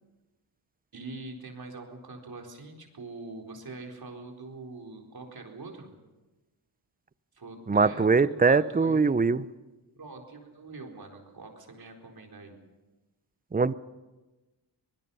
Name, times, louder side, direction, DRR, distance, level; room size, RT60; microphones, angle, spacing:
voice 1, 0.9-5.9 7.3-9.2 10.0-12.6, right 3 dB, 45° right, 2 dB, 4.2 m, -44 dB
voice 2, 7.7-9.4 13.5-13.7, right 4 dB, 20° right, 17 dB, 0.7 m, -22 dB
24.5 x 20.5 x 5.6 m, 1.2 s
cardioid pair, 65°, 49 cm